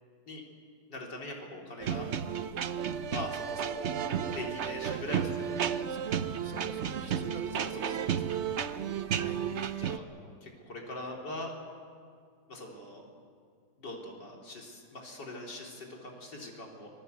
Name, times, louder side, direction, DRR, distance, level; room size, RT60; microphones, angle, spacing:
voice 1, 0.9-2.1 3.1-5.5 7.5-8.3 9.8-10.0 10.4-11.5 12.5-13.0 13.8-16.9, left 1 dB, 70° left, 0 dB, 4.1 m, -42 dB
sound 1, 1.8-10.0, right 8 dB, 55° right, 0.8 m, -33 dB
voice 2, 5.1-7.9 9.2-9.4, right 3 dB, 35° right, 6 dB, 1.2 m, -45 dB
25.5 x 20.5 x 8.1 m, 2.2 s
omnidirectional pair, 1.9 m